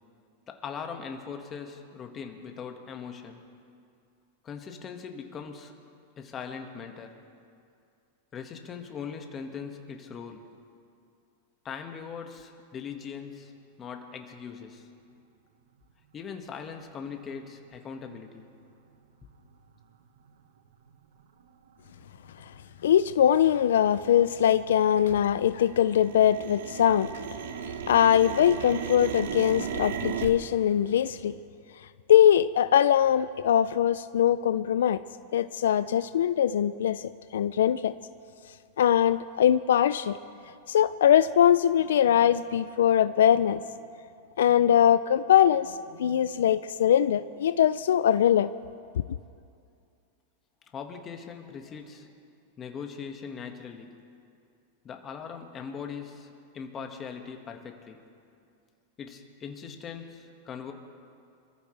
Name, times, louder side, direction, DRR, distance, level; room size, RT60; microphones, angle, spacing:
voice 1, 0.5-3.4 4.4-5.7 6.2-7.2 8.3-10.5 11.6-13.5 13.8-14.9 16.1-18.5 50.7-52.1 52.6-54.0 54.8-58.0 59.0-60.7, left 6 dB, 30° left, 4 dB, 1.7 m, -40 dB
sound 1, 19.5-19.6 20.2-20.3 20.9-21.2 21.7-21.8 22.0-22.6 22.9-25.2 25.5-30.3, right 7 dB, 80° right, 1.1 m, -36 dB
voice 2, 22.8-27.1 27.9-31.4 32.1-35.0 35.3-37.9 38.8-40.2 40.7-43.6 44.4-48.5, left 10 dB, 80° left, 13 dB, 0.4 m, -22 dB
26.0 x 14.5 x 3.3 m, 2.4 s
hypercardioid pair, 120°, 0 cm